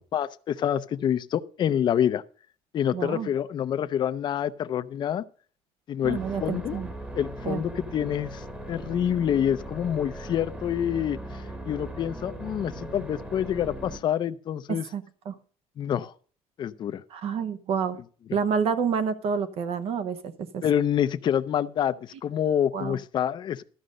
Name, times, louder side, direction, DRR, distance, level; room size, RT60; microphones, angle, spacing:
voice 1, 0.1-2.2 2.7-5.2 5.9-6.8 7.1-14.9 15.8-16.1 16.6-17.0 20.6-23.6, left 9 dB, 40° left, 0.5 m, -27 dB
voice 2, 2.9-3.3 6.0-6.9 7.5-7.6 14.7-15.3 17.1-18.0 18.3-20.6 22.7-23.0, right 6 dB, 55° right, 0.9 m, -29 dB
sound 1, 6.0-14.0, right 1 dB, 10° right, 1.2 m, -38 dB
13.0 x 5.2 x 6.5 m
cardioid pair, 140°, 12 cm